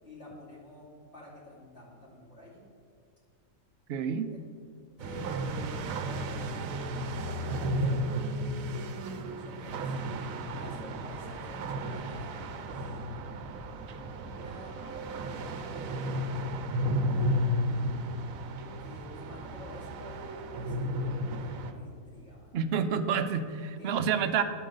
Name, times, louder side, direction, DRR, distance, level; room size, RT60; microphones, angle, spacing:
voice 1, 0.0-2.6 4.3-4.4 5.0-6.7 7.2-8.0 9.2-10.0 10.6-13.0 14.2-16.2 18.8-22.5 23.6-24.4, left 1 dB, 50° left, -7 dB, 2.8 m, -49 dB
voice 2, 3.9-4.3 22.5-24.4, right 7 dB, 65° right, 9 dB, 0.7 m, -28 dB
sound 1, 5.0-21.7, equal, 80° right, 1.1 m, -33 dB
sound 2, 9.7-22.9, left 1 dB, 10° left, 1.7 m, -51 dB
11.0 x 3.8 x 6.3 m, 2.1 s
omnidirectional pair, 1.4 m